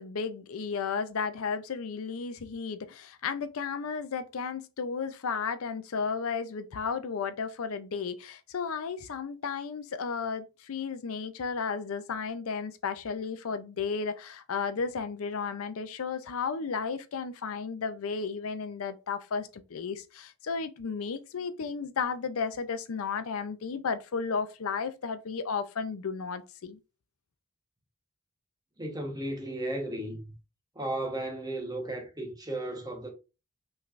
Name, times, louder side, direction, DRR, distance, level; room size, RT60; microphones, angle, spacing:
voice 1, 0.0-26.8, left 5 dB, 70° left, 0.5 m, -33 dB
voice 2, 28.8-30.3 30.7-33.1, right 1 dB, 15° right, 1.0 m, -35 dB
5.6 x 3.2 x 2.5 m
head